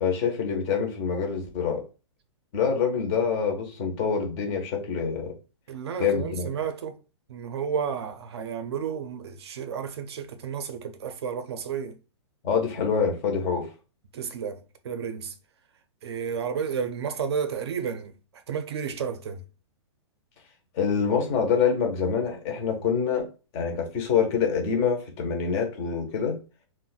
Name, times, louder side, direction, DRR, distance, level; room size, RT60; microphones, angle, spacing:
voice 1, 0.0-1.8 2.5-5.3 6.0-6.5 12.4-13.7 20.7-23.2 23.5-26.4, left 6 dB, 15° left, 0.5 m, -26 dB
voice 2, 5.7-7.0 7.3-12.0 14.1-15.3 16.0-18.1 18.5-19.4, right 7 dB, 65° right, 0.5 m, -32 dB
2.3 x 2.1 x 3.8 m
hypercardioid pair, 175°, 15 cm